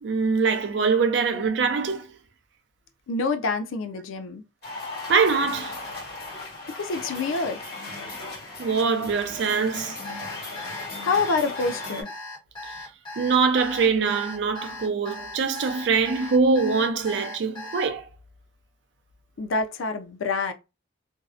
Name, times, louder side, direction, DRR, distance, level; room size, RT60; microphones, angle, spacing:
voice 1, 0.0-2.0 5.1-5.8 8.6-10.0 13.2-18.0, right 5 dB, 65° right, 0.4 m, -23 dB
voice 2, 3.1-4.4 6.7-7.6 11.0-12.1 19.4-20.5, left 4 dB, 85° left, 0.4 m, -27 dB
sound 1, 4.6-12.0, left 2 dB, 50° left, 1.3 m, -37 dB
Alarm, 10.0-17.9, left 2 dB, 20° left, 0.8 m, -38 dB
2.6 x 2.0 x 2.3 m
head